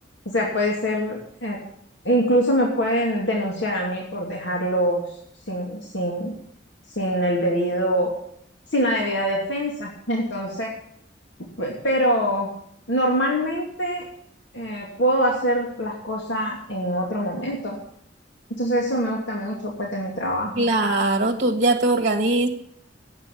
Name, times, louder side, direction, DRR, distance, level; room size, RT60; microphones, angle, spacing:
voice 1, 0.3-1.6 2.0-5.0 5.5-6.4 7.0-8.1 8.7-10.7 11.6-12.5 12.9-14.1 14.5-17.8 18.6-20.7, equal, 75° left, -1 dB, 2.8 m, -24 dB
voice 2, 20.5-22.5, right 2 dB, 45° right, 7 dB, 1.6 m, -21 dB
12.5 x 9.0 x 8.5 m, 0.66 s
head